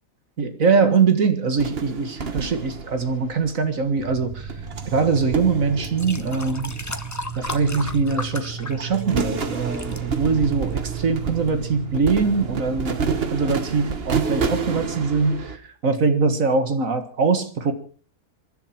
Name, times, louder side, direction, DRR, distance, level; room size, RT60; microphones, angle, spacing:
voice 1, 0.4-4.5 4.9-6.7 7.4-17.7, right 4 dB, 60° right, 9 dB, 2.1 m, -22 dB
sound 1, 1.6-3.9 4.5-7.0 7.4-8.3 8.6-15.6, right 5 dB, 40° right, 1.4 m, -29 dB
sound 2, 4.0-13.4, right 8 dB, 20° right, 1.0 m, -35 dB
sound 3, 5.2-5.3 5.8-9.3 9.5-10.0 10.7-10.8, left 2 dB, 15° left, 0.8 m, -35 dB
26.5 x 11.0 x 4.5 m, 0.39 s
omnidirectional pair, 1.6 m